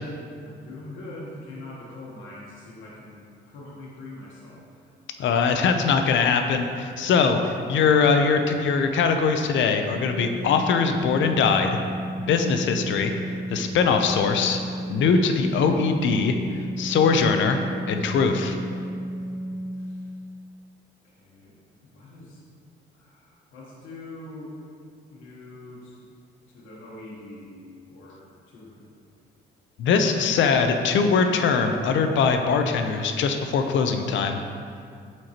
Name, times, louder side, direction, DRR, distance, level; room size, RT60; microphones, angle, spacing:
voice 1, 0.4-4.9 19.3-20.1 21.0-21.6 21.9-22.4 22.9-24.5 25.1-26.0 26.5-27.6 27.9-28.2 28.5-28.9, left 2 dB, 90° left, -5 dB, 1.2 m, -43 dB
voice 2, 5.2-11.8 12.3-13.1 13.5-14.6 14.9-16.3 16.8-17.6 17.9-18.6 29.8-34.4, left 5 dB, 70° left, 6 dB, 0.6 m, -21 dB
Organ, 9.7-20.3, right 1 dB, 5° left, 0.4 m, -33 dB
7.6 x 4.4 x 2.9 m, 2.3 s
cardioid pair, 90°, 20 cm